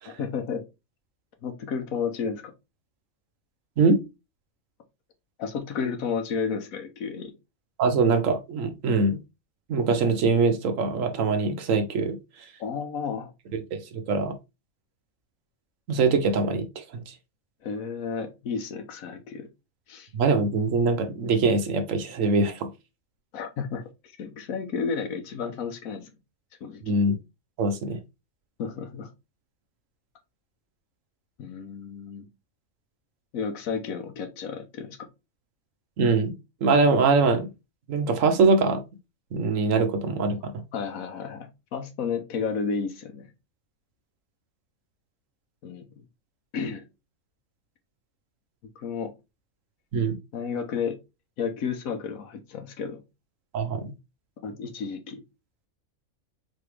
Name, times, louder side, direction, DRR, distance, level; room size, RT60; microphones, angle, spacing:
voice 1, 0.1-0.6 1.4-2.5 5.4-7.3 12.6-13.3 17.6-19.5 19.9-20.1 23.3-23.8 24.2-26.1 26.6-26.9 28.6-29.1 31.4-32.3 33.3-35.0 40.4-43.3 45.6-45.9 46.5-46.8 48.8-49.1 50.3-51.0 51.4-53.0 54.4-55.2, left 6 dB, 75° left, 1.2 m, -32 dB
voice 2, 7.8-9.2 9.7-12.2 13.7-14.3 15.9-17.1 20.1-22.7 26.8-27.2 27.6-28.0 36.0-36.3 36.6-37.5 37.9-38.8 39.3-40.5 49.9-50.2 53.5-53.9, right 4 dB, 65° right, 1.1 m, -23 dB
4.2 x 3.3 x 3.2 m
omnidirectional pair, 1.5 m